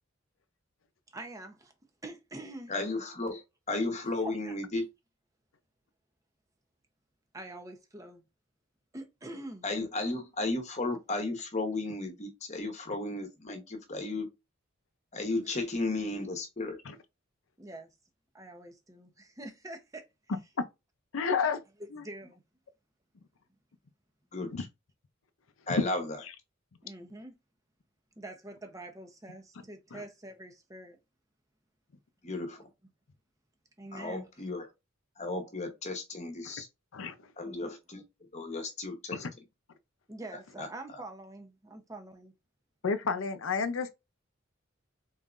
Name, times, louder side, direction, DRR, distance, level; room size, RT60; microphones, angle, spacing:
voice 1, 1.1-1.7 2.0-2.7 4.1-4.5 7.3-8.3 8.9-9.7 15.4-15.5 17.6-17.9 18.3-20.0 21.4-21.5 22.0-22.4 26.8-27.3 28.2-31.0 33.8-34.5 37.4-37.7 40.1-42.3, right 2 dB, 15° right, 0.7 m, -45 dB
voice 2, 2.7-3.4 3.7-4.9 9.6-14.3 15.1-16.8 24.3-24.7 25.7-26.2 32.2-32.6 33.9-34.7 35.2-36.7 37.4-38.0 38.3-39.2 40.6-40.7, left 2 dB, 35° left, 1.0 m, -34 dB
voice 3, 21.1-21.6 21.9-22.0 24.5-24.6 26.2-26.3 29.9-30.0 36.4-36.5 36.9-37.3 39.1-39.3 42.8-43.9, left 5 dB, 75° left, 0.6 m, -31 dB
4.0 x 3.6 x 2.5 m
head